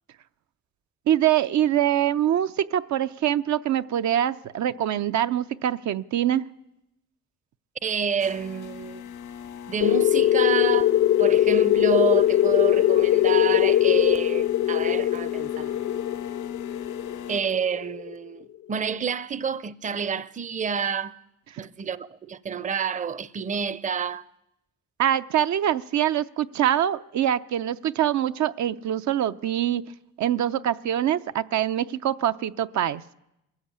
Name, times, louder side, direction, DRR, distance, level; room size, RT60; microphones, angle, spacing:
voice 1, 1.1-6.4 25.0-29.8 30.2-33.0, right 11 dB, 65° right, 0.7 m, -24 dB
voice 2, 7.8-9.0 9.7-10.9 11.2-15.7 17.3-21.2 21.6-24.2, right 6 dB, 25° right, 0.6 m, -29 dB
sound 1, 8.2-17.4, left 8 dB, 85° left, 1.7 m, -38 dB
sound 2, 9.8-18.1, left 12 dB, 60° left, 0.6 m, -21 dB
21.5 x 14.0 x 8.8 m
cardioid pair, 90°, 30 cm